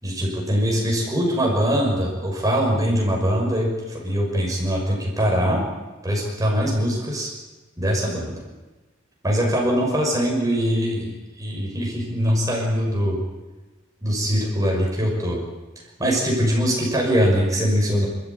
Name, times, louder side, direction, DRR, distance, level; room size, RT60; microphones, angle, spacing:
voice 1, 0.0-5.6 6.0-7.3 7.8-8.4 9.2-11.1 11.4-13.2 14.0-15.4 16.0-18.1, equal, 15° right, -2 dB, 6.1 m, -22 dB
28.5 x 14.0 x 9.7 m, 1.2 s
head